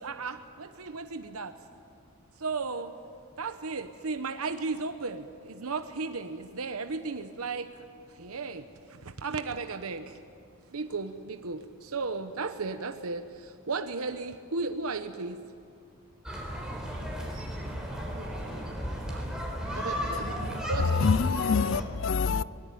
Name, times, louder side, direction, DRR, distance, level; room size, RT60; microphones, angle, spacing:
voice 1, 0.0-1.6 2.4-3.0 3.4-7.7 8.1-10.2 10.7-15.4 19.1-19.2 19.7-20.2 20.7-21.0, right 4 dB, 85° right, 1.0 m, -35 dB
sound 1, 16.3-21.8, equal, 5° right, 3.9 m, -35 dB
voice 2, 18.1-20.6, right 1 dB, 60° right, 3.2 m, -47 dB
voice 3, 20.8-22.4, left 5 dB, 60° left, 0.5 m, -25 dB
23.5 x 19.5 x 9.3 m
head